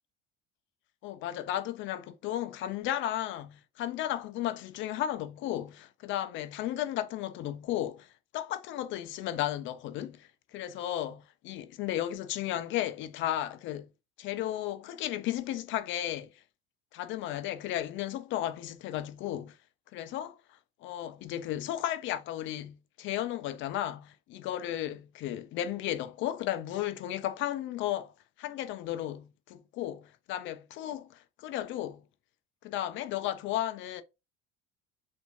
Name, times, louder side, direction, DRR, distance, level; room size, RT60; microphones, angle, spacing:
voice 1, 1.0-8.1 8.3-13.9 14.2-16.3 16.9-19.6 19.9-20.4 20.8-28.1 28.4-32.0 32.6-34.0, left 12 dB, 35° left, 0.4 m, -34 dB
3.4 x 2.6 x 2.8 m
figure-of-eight pair, 65°, 36 cm